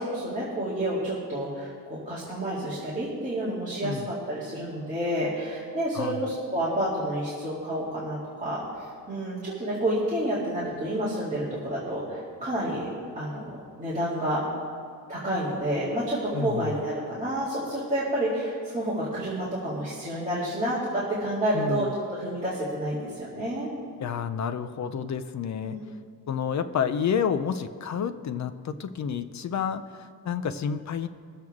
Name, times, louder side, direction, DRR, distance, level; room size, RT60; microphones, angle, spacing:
voice 1, 0.0-12.9 13.2-14.4 15.1-23.7 25.6-25.8, right 1 dB, 20° right, -9 dB, 2.2 m, -29 dB
voice 2, 16.3-16.8 21.5-21.9 24.0-25.8 26.3-31.1, left 7 dB, 50° left, 10 dB, 0.5 m, -29 dB
21.0 x 7.7 x 3.6 m, 2.2 s
wide cardioid pair, 170°, 38 cm